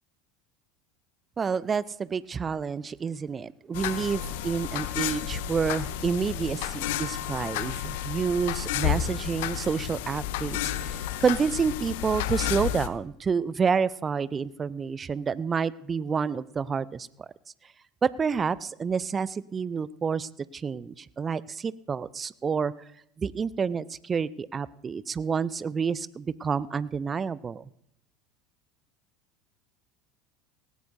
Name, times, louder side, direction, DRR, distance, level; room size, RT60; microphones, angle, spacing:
voice 1, 1.4-17.3 18.0-22.7 23.2-27.7, right 6 dB, 25° right, 20 dB, 0.4 m, -29 dB
sound 1, 3.7-12.9, left 11 dB, 65° left, 0.7 m, -31 dB
18.5 x 17.0 x 2.7 m, 0.73 s
figure-of-eight pair, 75°, 0 cm